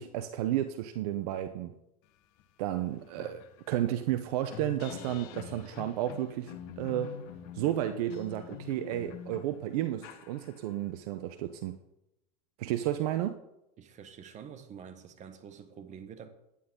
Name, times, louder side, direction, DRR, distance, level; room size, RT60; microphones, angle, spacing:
voice 1, 0.0-1.7 2.6-3.4 3.7-7.1 7.5-11.7 12.6-13.4, right 12 dB, 70° right, 0.7 m, -32 dB
sound 1, 2.4-2.5 2.8-10.9, left 9 dB, 60° left, 1.3 m, -46 dB
voice 2, 13.8-16.3, right 7 dB, 35° right, 1.4 m, -47 dB
11.0 x 9.8 x 3.8 m
hypercardioid pair, 110°, 20 cm